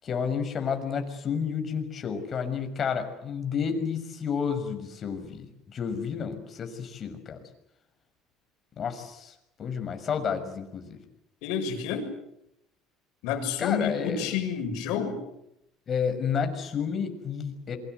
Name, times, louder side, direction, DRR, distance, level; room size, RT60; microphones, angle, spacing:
voice 1, 0.0-7.4 8.8-9.3 9.6-11.0 13.6-14.3 15.9-17.8, left 6 dB, 40° left, 6 dB, 6.2 m, -31 dB
voice 2, 11.4-12.1 13.2-15.2, left 7 dB, 80° left, 6 dB, 6.6 m, -29 dB
28.0 x 24.0 x 8.0 m, 0.83 s
supercardioid pair, 100°, 0 cm